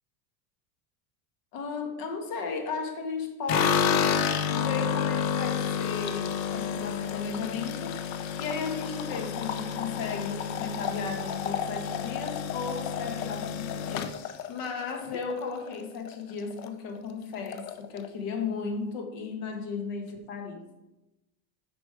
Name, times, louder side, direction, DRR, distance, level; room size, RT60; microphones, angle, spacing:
voice 1, 1.5-4.2 4.5-20.7, left 5 dB, 50° left, 4 dB, 1.4 m, -35 dB
sound 1, 3.5-15.7 16.1-16.7 17.0-17.1 17.3-18.1, left 7 dB, 80° left, 0.8 m, -30 dB
7.8 x 5.2 x 4.7 m, 0.98 s
cardioid pair, 170°, 41 cm